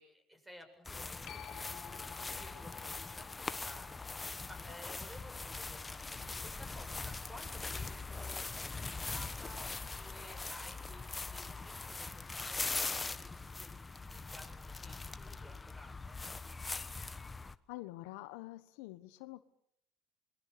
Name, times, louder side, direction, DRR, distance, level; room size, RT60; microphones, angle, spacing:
voice 1, 0.0-9.7 9.9-16.2, equal, 10° right, 7 dB, 7.2 m, -56 dB
sound 1, 0.8-17.5, left 3 dB, 20° left, 1.1 m, -42 dB
sound 2, 1.3-8.4 14.0-14.1, left 12 dB, 55° left, 0.9 m, -56 dB
Trumpet, 8.1-12.4, right 3 dB, 50° right, 5.7 m, -69 dB
voice 2, 17.7-19.4, left 17 dB, 85° left, 12 dB, 1.2 m, -47 dB
28.0 x 22.0 x 6.8 m, 0.71 s
supercardioid pair, 95°, 0 cm